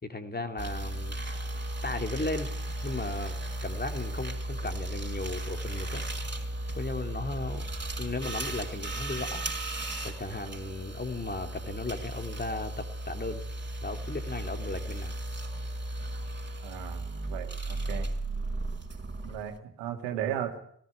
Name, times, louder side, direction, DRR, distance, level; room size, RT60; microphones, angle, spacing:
voice 1, 0.0-1.2 1.8-2.5 2.8-6.0 6.7-7.7 8.0-9.5 10.0-13.4 13.8-15.2, left 2 dB, 20° left, 6 dB, 2.7 m, -36 dB
sound 1, 0.6-19.6, right 1 dB, 25° right, 5.2 m, -35 dB
voice 2, 16.6-18.1 19.2-20.7, right 10 dB, 70° right, 5 dB, 2.3 m, -36 dB
19.0 x 14.0 x 9.8 m, 0.67 s
figure-of-eight pair, 40°, 46 cm